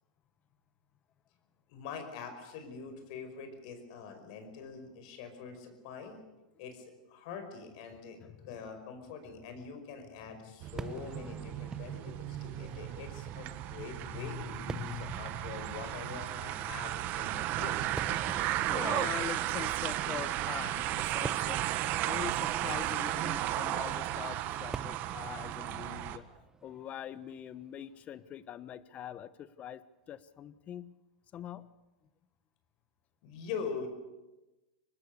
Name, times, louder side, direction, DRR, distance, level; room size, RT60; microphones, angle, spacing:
voice 1, 1.7-6.2 6.6-8.2 8.5-17.8 22.6-22.9 33.2-33.9, left 5 dB, 60° left, 7 dB, 5.2 m, -44 dB
voice 2, 8.2-8.5 13.7-15.6 18.4-21.7 22.0-26.2 26.6-31.0 31.3-31.7, left 10 dB, 35° left, 16 dB, 1.1 m, -43 dB
sound 1, 10.6-26.2, right 14 dB, 45° right, 1.4 m, -34 dB
Fireworks, 10.8-28.1, right 4 dB, 15° right, 0.9 m, -48 dB
24.0 x 20.0 x 6.8 m, 1.1 s
hypercardioid pair, 115°, 4 cm